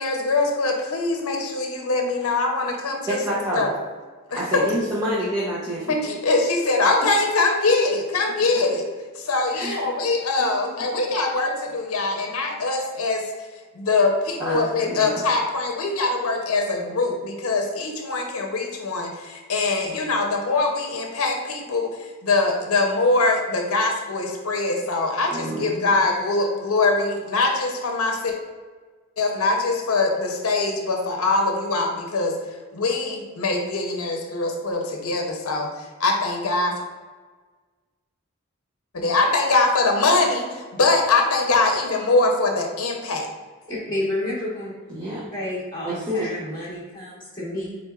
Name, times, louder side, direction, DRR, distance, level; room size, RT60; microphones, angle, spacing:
voice 1, 0.0-3.2 3.5-3.7 4.3-4.4 5.9-8.8 9.2-13.2 13.8-21.9 22.2-28.3 29.2-32.3 32.7-35.7 36.0-36.7 38.9-43.3, left 3 dB, 65° left, 2 dB, 0.7 m, -23 dB
voice 2, 3.1-3.7 4.3-6.0 8.7-8.8 9.5-9.8 10.4-10.9 14.4-15.2 19.8-20.0 25.3-26.0 44.9-45.2 45.8-46.3, equal, 15° right, -8 dB, 0.6 m, -28 dB
voice 3, 43.7-44.7 45.3-47.8, left 1 dB, 25° left, -11 dB, 1.1 m, -30 dB
4.3 x 3.9 x 2.4 m, 1.4 s
head